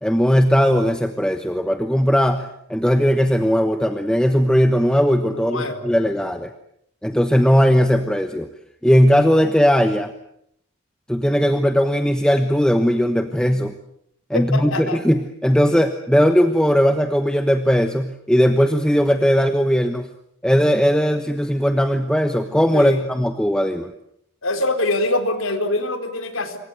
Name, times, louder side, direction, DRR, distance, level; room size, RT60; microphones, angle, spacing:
voice 1, 0.0-6.5 7.0-8.5 8.8-10.1 11.1-13.7 14.3-20.1 20.4-23.9, equal, 5° left, 7 dB, 1.1 m, -18 dB
voice 2, 5.2-5.9 14.3-15.0 22.7-23.1 24.4-26.6, left 2 dB, 85° left, 7 dB, 4.1 m, -24 dB
27.0 x 24.0 x 8.0 m, 0.74 s
head